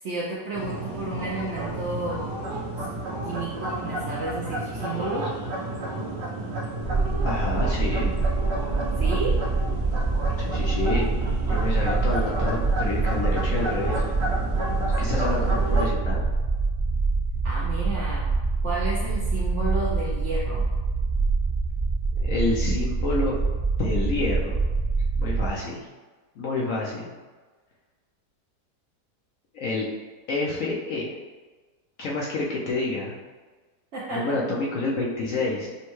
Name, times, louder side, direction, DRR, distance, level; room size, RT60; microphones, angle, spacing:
voice 1, 0.0-2.3 2.8-2.9 3.3-5.3 9.0-9.4 17.4-18.3 18.6-20.7 33.9-34.4, right 2 dB, 65° right, -5 dB, 0.7 m, -31 dB
sound 1, 0.5-15.8, right 1 dB, 85° right, 1.5 m, -31 dB
sound 2, 6.8-25.5, right 3 dB, 20° right, 0.8 m, -25 dB
voice 2, 7.2-8.1 10.4-11.1 11.5-14.1 15.0-16.2 22.2-23.4 23.8-24.6 25.2-25.8 26.4-27.1 29.5-29.8 30.3-31.1 32.0-33.2 34.1-35.8, left 3 dB, 65° left, -4 dB, 0.8 m, -28 dB
6.3 x 2.2 x 3.0 m, 1.3 s
omnidirectional pair, 1.8 m